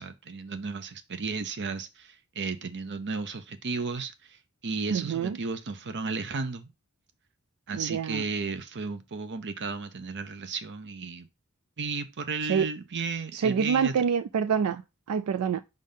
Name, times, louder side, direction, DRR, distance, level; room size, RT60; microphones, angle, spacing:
voice 1, 0.0-4.4 4.6-6.7 7.7-11.3 11.8-13.9, right 4 dB, 55° right, 0.8 m, -34 dB
voice 2, 4.9-5.4 7.7-8.2 12.5-12.7 13.3-14.8 15.1-15.6, right 7 dB, 80° right, 0.4 m, -26 dB
5.3 x 3.6 x 5.4 m
head